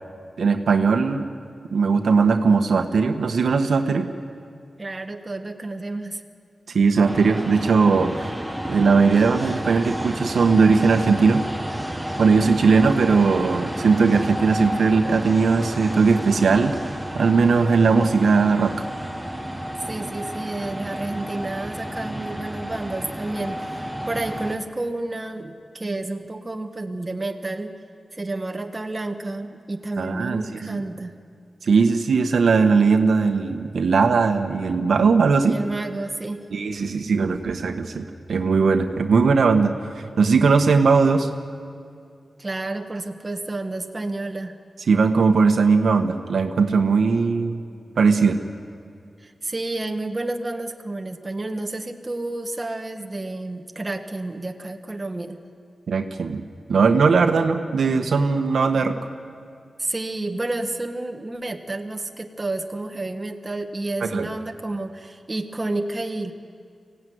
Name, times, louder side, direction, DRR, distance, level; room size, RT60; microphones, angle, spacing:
voice 1, 0.4-1.3 1.7-4.1 6.7-8.3 8.7-11.4 12.2-18.8 30.0-30.8 31.6-35.6 36.5-39.7 40.2-41.3 44.9-47.6 48.0-48.4 55.9-56.4 56.7-59.0 64.0-64.3, right 4 dB, 90° right, 5 dB, 1.2 m, -19 dB
voice 2, 4.8-6.2 19.9-27.8 28.1-31.2 35.5-36.5 42.4-44.6 49.2-55.4 59.8-66.3, right 2 dB, 25° right, 4 dB, 1.4 m, -30 dB
sound 1, 7.0-24.6, equal, 5° right, 1.5 m, -31 dB
24.5 x 16.5 x 9.4 m, 2.3 s
wide cardioid pair, 100°, 0 cm